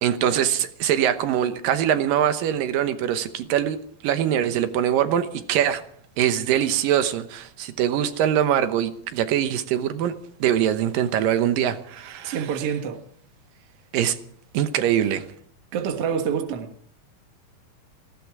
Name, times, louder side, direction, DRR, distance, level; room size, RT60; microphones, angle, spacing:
voice 1, 0.0-3.8 4.0-5.8 6.2-10.1 10.4-12.5 13.9-14.2 14.5-15.2, right 10 dB, 85° right, 2.7 m, -23 dB
voice 2, 12.2-13.0 15.7-16.7, right 7 dB, 50° right, 2.2 m, -27 dB
18.5 x 16.0 x 4.8 m
omnidirectional pair, 3.9 m